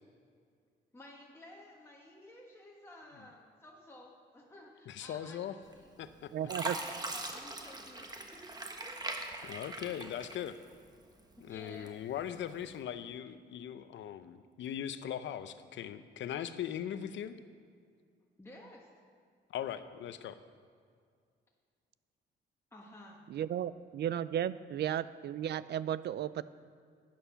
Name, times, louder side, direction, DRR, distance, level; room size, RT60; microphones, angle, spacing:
voice 1, 0.9-5.9 6.4-9.0 11.4-12.0 18.4-18.9 22.7-23.2, left 1 dB, 10° left, -2 dB, 1.5 m, -54 dB
voice 2, 4.9-5.6 6.0-6.3 9.4-10.6 11.4-17.4 19.5-20.4, left 10 dB, 70° left, 12 dB, 0.7 m, -40 dB
Fill (with liquid), 5.7-6.1 6.5-10.9 11.3-12.1 12.7-12.8, right 2 dB, 20° right, 1.3 m, -41 dB
voice 3, 6.3-6.8 23.3-26.4, right 10 dB, 60° right, 17 dB, 0.5 m, -34 dB
11.0 x 9.4 x 5.8 m, 2.2 s
cardioid pair, 90°, 20 cm